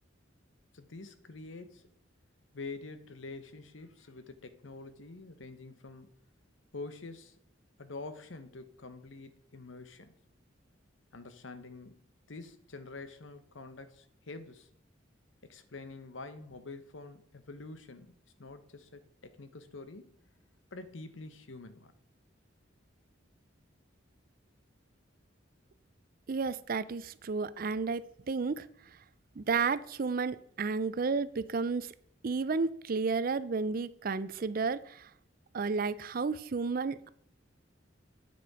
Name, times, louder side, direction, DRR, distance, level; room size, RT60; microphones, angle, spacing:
voice 1, 0.7-1.9 2.5-6.1 6.7-7.4 7.8-10.1 11.1-14.7 15.4-20.2 20.7-21.9, left 3 dB, 75° left, 11 dB, 1.0 m, -46 dB
voice 2, 26.3-28.7 29.4-31.9 32.2-35.1 35.5-37.1, right 4 dB, 45° right, 16 dB, 0.5 m, -32 dB
9.5 x 6.9 x 4.8 m, 0.67 s
head